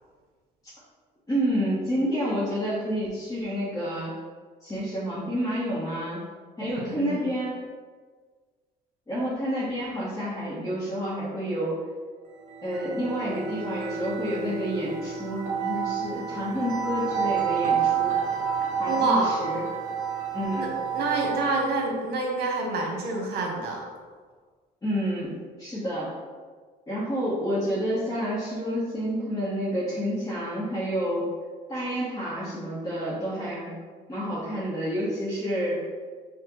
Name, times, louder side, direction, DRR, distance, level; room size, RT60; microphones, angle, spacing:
voice 1, 1.3-4.1 4.6-6.2 6.6-7.6 9.1-11.8 12.6-18.1 18.8-19.6 20.3-20.7 24.8-26.1 26.9-31.3 31.7-33.7 34.1-35.8, equal, 20° left, -10 dB, 1.1 m, -29 dB
voice 2, 6.9-7.3 18.9-19.3 20.5-23.8, right 3 dB, 70° right, 1 dB, 1.0 m, -27 dB
sound 1, 12.4-21.9, right 7 dB, 50° right, 1.4 m, -29 dB
5.7 x 2.4 x 3.0 m, 1.5 s
cardioid pair, 110°, 17 cm